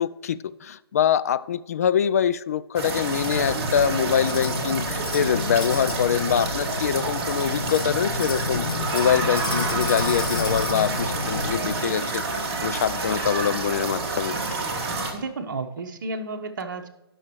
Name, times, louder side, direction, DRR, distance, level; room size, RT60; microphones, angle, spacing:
voice 1, 0.0-8.7 8.9-14.4, left 8 dB, 35° left, 15 dB, 0.4 m, -24 dB
sound 1, 2.7-15.1, right 3 dB, 25° right, 1.7 m, -28 dB
sound 2, 3.1-11.7, left 4 dB, 55° left, 2.2 m, -31 dB
voice 2, 15.1-16.9, right 3 dB, 50° right, 6 dB, 1.1 m, -32 dB
18.0 x 6.3 x 3.1 m, 0.99 s
figure-of-eight pair, 135°, 13 cm